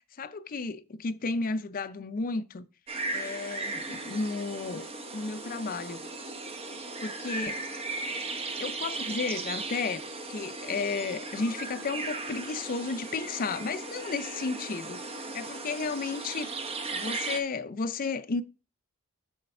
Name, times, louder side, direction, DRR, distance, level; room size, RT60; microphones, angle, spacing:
voice 1, 0.2-2.7 3.1-4.9 5.1-6.0 7.0-7.6 8.6-10.0 10.3-16.5 16.9-18.4, left 4 dB, 40° left, 0.4 m, -33 dB
sound 1, 2.9-17.4, right 3 dB, 30° right, 0.7 m, -37 dB
6.5 x 3.2 x 5.3 m
head